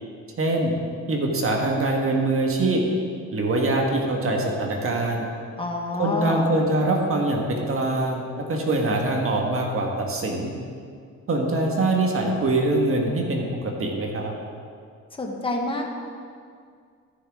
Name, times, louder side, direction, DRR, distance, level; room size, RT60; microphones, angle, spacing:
voice 1, 0.4-0.7 1.1-2.8 3.3-5.3 6.0-8.2 8.5-10.5 11.3-14.3, right 2 dB, 45° right, 0 dB, 1.6 m, -23 dB
voice 2, 5.6-6.4 15.2-15.9, left 2 dB, 15° left, 0 dB, 1.3 m, -27 dB
13.5 x 6.3 x 3.6 m, 2.2 s
cardioid pair, 90°, 30 cm